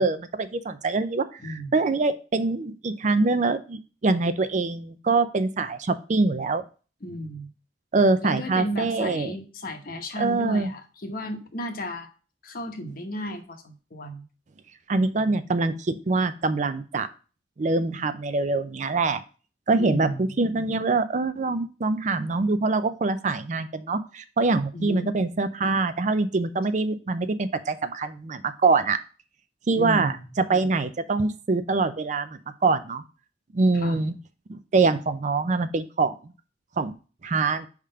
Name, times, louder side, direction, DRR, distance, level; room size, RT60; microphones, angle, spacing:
voice 1, 0.0-6.6 7.9-9.4 10.2-10.7 14.9-17.1 17.6-19.2 19.7-29.0 29.7-33.0 33.5-34.1 34.5-36.3 36.8-36.9 37.2-37.7, right 3 dB, 45° right, 11 dB, 0.4 m, -24 dB
voice 2, 1.4-1.7 7.0-7.5 8.2-12.1 12.4-14.2 19.8-20.3 24.7-25.1 29.7-30.3 33.7-34.0, equal, 55° left, 5 dB, 1.0 m, -33 dB
4.9 x 3.6 x 5.5 m, 0.35 s
head